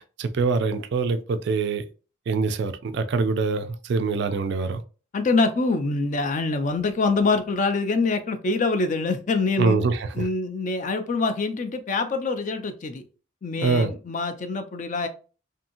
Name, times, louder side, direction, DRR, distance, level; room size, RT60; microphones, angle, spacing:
voice 1, 0.0-1.8 2.3-4.8 9.6-10.3 13.6-13.9, right 4 dB, 55° right, 0.3 m, -24 dB
voice 2, 5.1-9.8 10.2-13.0 13.4-15.1, left 3 dB, 35° left, 0.4 m, -25 dB
2.7 x 2.6 x 2.5 m
head